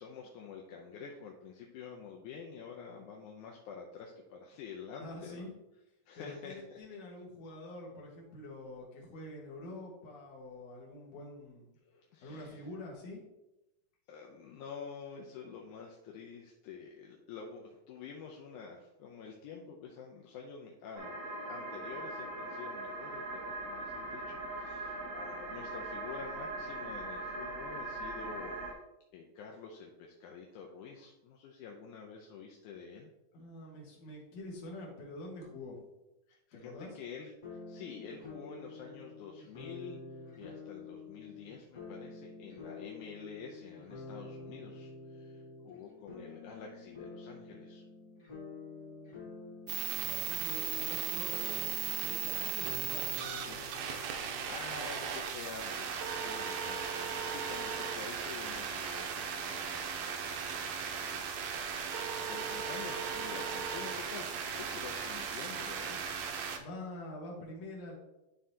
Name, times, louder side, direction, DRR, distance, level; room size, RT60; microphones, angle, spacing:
voice 1, 0.0-5.5 6.1-6.8 11.9-12.7 14.1-28.7 29.1-33.1 36.3-40.0 40.4-47.8 54.5-60.2 61.0-61.3 62.1-66.0, left 6 dB, 80° left, 0 dB, 2.0 m, -48 dB
voice 2, 5.0-5.5 6.2-11.7 12.2-13.2 33.3-35.8 36.5-36.9 49.9-53.6 66.6-67.9, left 1 dB, 60° left, -2 dB, 2.4 m, -46 dB
sound 1, 21.0-28.7, right 2 dB, 45° right, 1.3 m, -40 dB
sound 2, 37.4-55.2, left 4 dB, 30° left, 1.5 m, -49 dB
sound 3, 49.7-66.6, right 7 dB, 85° right, 1.5 m, -37 dB
11.0 x 3.7 x 2.8 m, 0.94 s
omnidirectional pair, 3.8 m